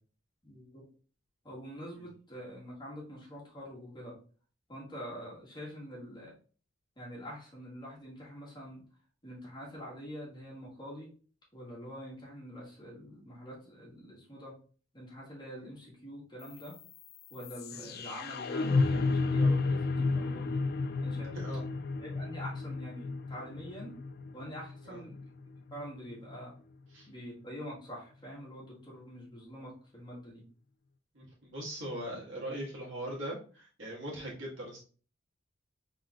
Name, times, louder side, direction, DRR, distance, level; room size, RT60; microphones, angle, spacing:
voice 1, 0.4-0.8 1.4-4.2 4.7-6.3 7.0-8.8 9.2-11.1 11.5-14.5 14.9-16.7 17.3-20.6 21.0-21.3 22.0-24.0 24.3-25.2 25.7-26.5 27.1-30.5 34.1-34.3, equal, 25° left, -5 dB, 1.6 m, -45 dB
sound 1, 16.4-26.4, left 3 dB, 50° left, 0.4 m, -32 dB
voice 2, 31.1-34.8, right 1 dB, 70° right, -3 dB, 1.8 m, -40 dB
4.5 x 3.8 x 2.4 m, 0.40 s
head